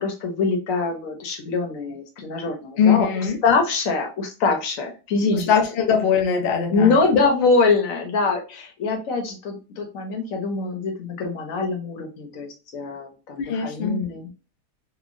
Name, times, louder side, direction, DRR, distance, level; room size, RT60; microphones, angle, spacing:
voice 1, 0.0-5.5 6.7-14.3, left 4 dB, 65° left, 1.0 m, -24 dB
voice 2, 2.8-3.4 5.3-6.9 13.4-14.0, left 7 dB, 85° left, 0.5 m, -21 dB
3.0 x 2.3 x 2.4 m
omnidirectional pair, 1.7 m